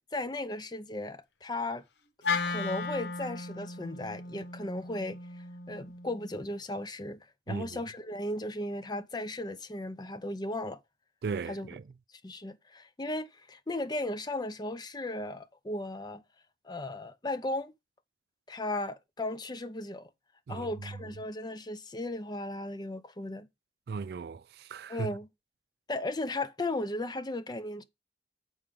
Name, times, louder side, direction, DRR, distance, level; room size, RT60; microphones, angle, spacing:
voice 1, 0.0-1.8 2.3-7.2 7.5-10.8 11.5-11.7 12.2-16.2 16.6-17.7 18.5-20.1 20.5-23.5 24.9-25.3 25.9-27.8, left 2 dB, 25° left, 0.6 m, -36 dB
Wind instrument woodwind instrument, 2.2-6.5, left 4 dB, 75° left, 0.9 m, -36 dB
voice 2, 7.5-7.8 11.2-11.8 20.5-20.7 23.9-25.1, right 5 dB, 60° right, 0.3 m, -37 dB
7.3 x 4.9 x 5.1 m
head